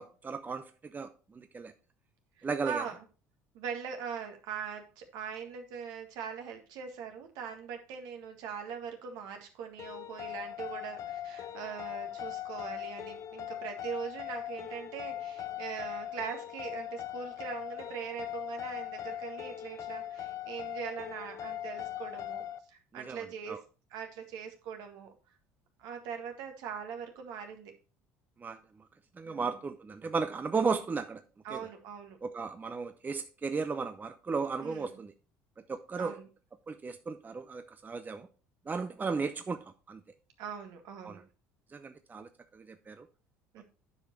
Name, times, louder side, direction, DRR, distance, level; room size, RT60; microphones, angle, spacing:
voice 1, 0.0-1.7 2.4-2.8 22.9-23.6 28.4-28.6 29.2-31.2 31.5-31.7 32.2-35.1 35.7-36.2 36.7-38.3 38.7-40.0 41.0-41.2 41.7-43.1 43.6-43.7, right 4 dB, 25° right, 9 dB, 0.7 m, -35 dB
voice 2, 2.4-3.1 3.5-23.6 23.9-25.1 25.8-27.7 29.2-29.5 31.4-32.2 34.6-35.0 36.0-36.3 40.4-41.2 43.5-43.6, right 7 dB, 65° right, 5 dB, 1.8 m, -41 dB
sound 1, 9.8-22.6, left 11 dB, 45° left, 0.8 m, -40 dB
9.6 x 5.1 x 4.4 m, 0.35 s
hypercardioid pair, 65°, 7 cm